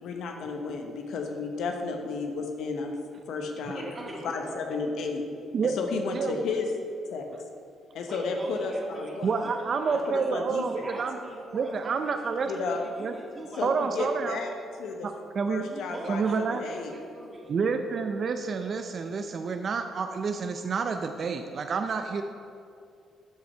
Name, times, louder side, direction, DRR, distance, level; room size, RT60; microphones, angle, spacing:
voice 1, 0.0-2.9 3.3-3.8 4.2-5.3 5.6-6.7 7.1-7.2 7.9-9.4 9.9-10.9 12.5-12.9 13.6-14.5 14.8-15.1 15.5-16.9, left 4 dB, 75° left, 3 dB, 1.0 m, -32 dB
voice 2, 3.3-4.6 8.1-10.3 10.6-11.9 12.2-14.2 15.6-17.5, right 1 dB, 30° right, -3 dB, 2.4 m, -42 dB
voice 3, 9.2-11.2 11.5-12.5 13.0-13.1 13.6-14.4 15.0-15.6 16.1-16.6 17.5-22.2, right 5 dB, 50° right, 6 dB, 0.5 m, -29 dB
11.5 x 5.4 x 4.4 m, 2.4 s
cardioid pair, 90°, 0 cm